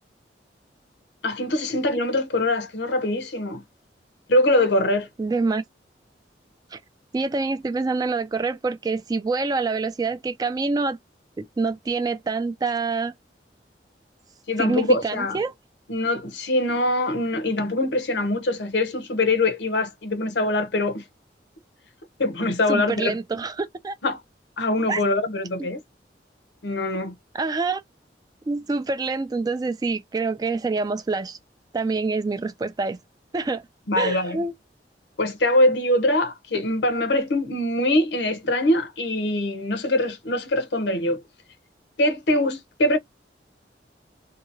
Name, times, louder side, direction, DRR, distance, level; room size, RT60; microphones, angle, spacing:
voice 1, 1.2-3.6 4.3-5.1 14.5-15.4 15.9-21.0 22.2-23.2 24.0-24.2 24.6-25.8 26.6-27.1 33.9-34.4 35.2-41.2 42.0-43.0, left 1 dB, 75° left, 0.8 m, -23 dB
voice 2, 5.2-5.6 6.7-6.8 7.1-11.0 11.4-13.1 14.6-15.5 22.7-23.9 24.9-25.0 25.6-25.7 27.3-27.8 28.5-31.4 31.7-33.0 33.3-33.7 34.0-34.5, right 3 dB, 20° right, 0.3 m, -26 dB
2.8 x 2.7 x 2.6 m
head